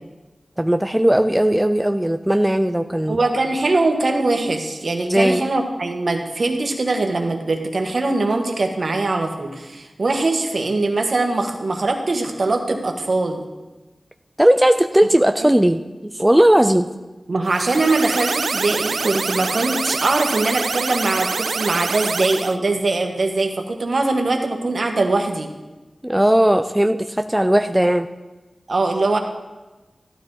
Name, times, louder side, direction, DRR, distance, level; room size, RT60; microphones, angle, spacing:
voice 1, 0.6-3.2 5.1-5.4 14.4-16.9 26.0-28.1, right 1 dB, 10° right, 8 dB, 0.4 m, -17 dB
voice 2, 3.1-13.4 15.4-15.5 17.3-25.5 28.7-29.2, right 2 dB, 60° right, 3 dB, 1.6 m, -21 dB
sound 1, 17.5-22.6, right 4 dB, 85° right, 0.3 m, -25 dB
14.0 x 12.5 x 4.0 m, 1.2 s
wide cardioid pair, 95°, 0 cm